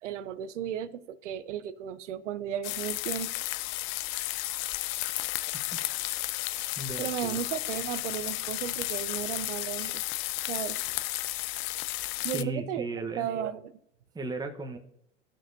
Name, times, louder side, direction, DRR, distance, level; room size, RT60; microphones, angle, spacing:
voice 1, 0.0-3.3 7.0-10.0 10.5-10.8 12.2-12.9 13.2-13.7, right 10 dB, 85° right, 0.6 m, -34 dB
sound 1, 2.6-12.4, left 18 dB, 55° left, 0.5 m, -33 dB
voice 2, 6.8-7.4 12.3-13.3 14.1-14.8, right 2 dB, 10° right, 1.0 m, -35 dB
14.5 x 6.1 x 2.6 m
hypercardioid pair, 90°, 35 cm